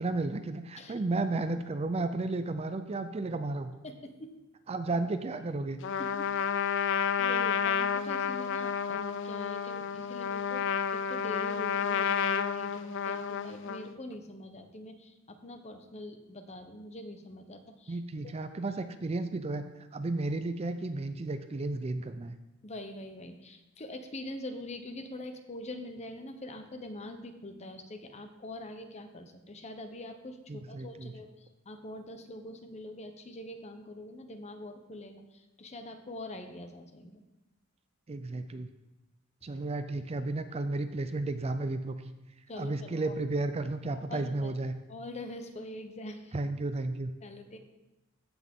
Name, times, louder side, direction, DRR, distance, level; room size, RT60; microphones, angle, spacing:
voice 1, 0.0-3.7 4.7-5.8 17.9-19.6 19.9-22.4 30.5-31.1 38.1-38.7 39.4-42.0 42.6-44.7 46.3-47.1, right 2 dB, 30° right, 10 dB, 0.4 m, -33 dB
voice 2, 3.8-4.3 6.2-6.3 6.8-18.0 18.2-18.3 22.6-37.2 42.5-43.2 44.1-44.5 44.9-46.4 47.2-47.6, left 1 dB, 30° left, 7 dB, 0.8 m, -44 dB
Trumpet, 5.8-13.9, left 7 dB, 60° left, 0.4 m, -31 dB
15.0 x 6.1 x 3.6 m, 0.99 s
head